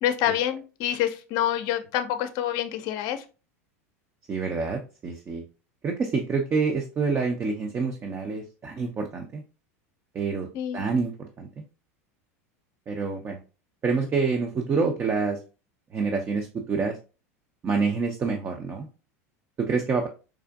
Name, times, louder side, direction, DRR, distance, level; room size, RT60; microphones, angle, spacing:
voice 1, 0.0-3.2 10.5-10.9, left 11 dB, 55° left, 9 dB, 0.5 m, -27 dB
voice 2, 4.3-5.4 5.8-9.4 10.1-10.5 10.7-11.5 12.9-13.4 13.8-15.4 15.9-17.0 17.6-18.9 19.6-20.1, right 4 dB, 30° right, 3 dB, 0.5 m, -27 dB
4.6 x 2.5 x 2.3 m, 0.33 s
hypercardioid pair, 90°, 8 cm